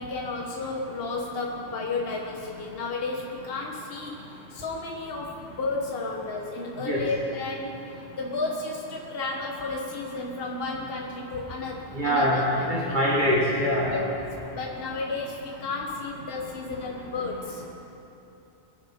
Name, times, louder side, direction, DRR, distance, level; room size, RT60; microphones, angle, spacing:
voice 1, 0.0-7.8 8.2-13.0 13.9-14.0 14.5-17.6, left 3 dB, 55° left, 0 dB, 1.3 m, -33 dB
voice 2, 11.9-12.4 12.7-13.9, equal, 40° right, -6 dB, 1.9 m, -23 dB
21.0 x 7.8 x 5.7 m, 2.9 s
omnidirectional pair, 1.2 m